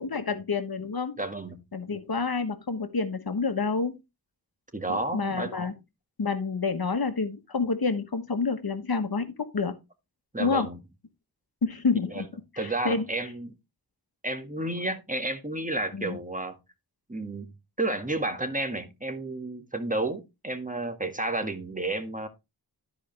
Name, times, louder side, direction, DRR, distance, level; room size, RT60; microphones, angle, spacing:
voice 1, 0.0-1.2 1.7-4.0 4.9-5.7 6.2-9.7 10.4-10.7 11.6-12.3 12.5-13.0 15.9-16.2, left 4 dB, 60° left, 1.3 m, -28 dB
voice 2, 1.2-1.6 4.7-5.5 10.3-10.8 12.1-12.2 12.6-13.6 14.2-16.6 17.1-22.3, right 2 dB, 20° right, 1.9 m, -31 dB
13.0 x 5.0 x 3.3 m
cardioid pair, 40°, 41 cm